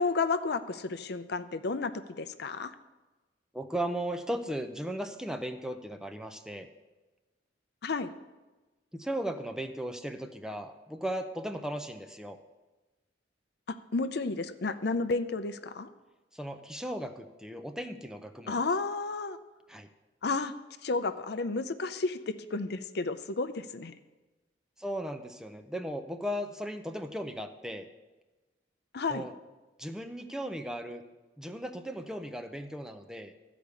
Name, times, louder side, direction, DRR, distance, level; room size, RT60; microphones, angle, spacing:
voice 1, 0.0-1.9 2.2-2.7 7.8-8.1 13.7-15.9 18.5-19.4 20.2-20.5 20.8-23.9 28.9-29.3, left 3 dB, 60° left, 11 dB, 0.6 m, -31 dB
voice 2, 3.5-6.7 8.9-12.4 16.3-18.6 19.7-19.9 24.8-27.9 29.1-29.3 29.8-31.0 31.4-33.3, right 1 dB, 5° right, 6 dB, 0.6 m, -36 dB
13.5 x 5.1 x 8.2 m, 1.2 s
head